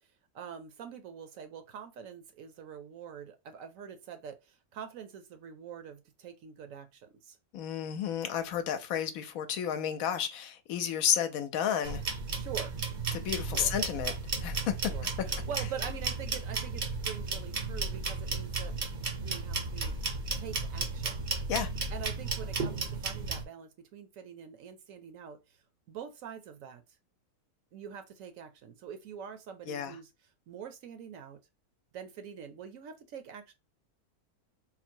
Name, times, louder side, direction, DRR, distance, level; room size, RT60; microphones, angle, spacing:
voice 1, 0.3-7.4 12.3-12.8 13.5-13.8 14.9-18.7 19.1-20.0 20.4-21.3 21.9-25.6 25.9-26.8 27.7-30.1 30.5-31.4 31.9-33.5, right 7 dB, 65° right, 1.0 m, -45 dB
voice 2, 7.5-12.0 13.1-14.1 14.4-14.7 21.5-21.7 29.7-29.9, left 9 dB, 70° left, 1.0 m, -31 dB
sound 1, 11.8-23.4, right 4 dB, 45° right, 0.6 m, -34 dB
3.8 x 2.0 x 4.4 m
omnidirectional pair, 1.6 m